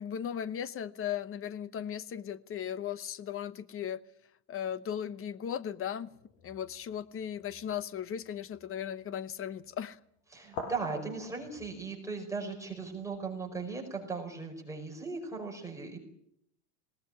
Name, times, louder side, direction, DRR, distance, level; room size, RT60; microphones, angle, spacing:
voice 1, 0.0-4.0 4.5-6.1 6.4-10.0, left 9 dB, 25° left, 1.0 m, -37 dB
sound 1, 6.0-6.8 7.4-7.7 8.5-8.7 10.4-11.7, left 4 dB, 70° left, 6.2 m, -44 dB
voice 2, 10.3-16.0, right 4 dB, 5° right, 4.9 m, -38 dB
19.5 x 18.0 x 9.9 m
supercardioid pair, 140°, 50 cm